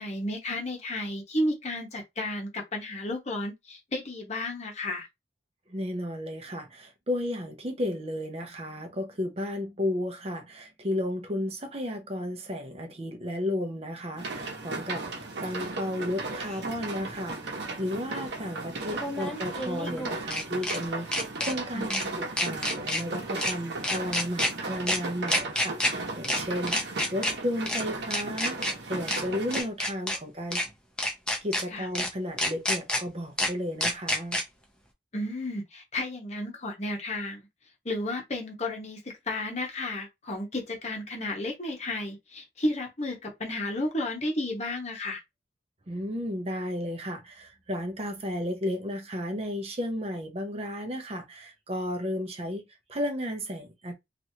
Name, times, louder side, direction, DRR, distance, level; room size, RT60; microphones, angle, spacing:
voice 1, 0.0-5.1 21.7-22.1 31.7-31.9 35.1-37.5 37.8-45.2, left 1 dB, 40° left, 0.9 m, -32 dB
voice 2, 5.7-15.1 15.4-26.8 27.1-30.6 31.4-34.4 45.9-53.9, left 1 dB, 35° right, 0.6 m, -33 dB
sound 1, 14.2-29.6, right 3 dB, 70° right, 0.9 m, -36 dB
sound 2, 16.5-16.6 18.9-20.8 21.1-21.5 21.9-22.0 22.4-23.0 23.4-23.5 23.8-24.5 24.9-25.0 25.3-25.9 26.2-26.4 26.7-27.3 27.7-27.8 28.1-28.7 29.1-29.2 29.5-30.2 30.5-30.7 31.0-31.6 31.9-32.1 32.4-33.0 33.4-33.5 33.8-34.4, left 1 dB, 5° left, 0.7 m, -28 dB
3.0 x 2.5 x 2.7 m
head